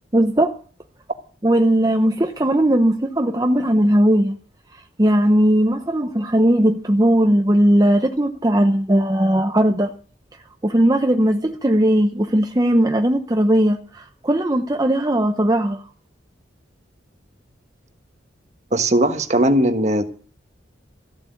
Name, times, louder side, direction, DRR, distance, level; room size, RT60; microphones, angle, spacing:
voice 1, 0.1-0.5 1.4-4.3 5.0-9.9 10.6-15.8, right 1 dB, 20° right, 0.8 m, -18 dB
voice 2, 18.7-20.0, right 1 dB, 40° right, 1.3 m, -18 dB
14.5 x 7.7 x 8.5 m
head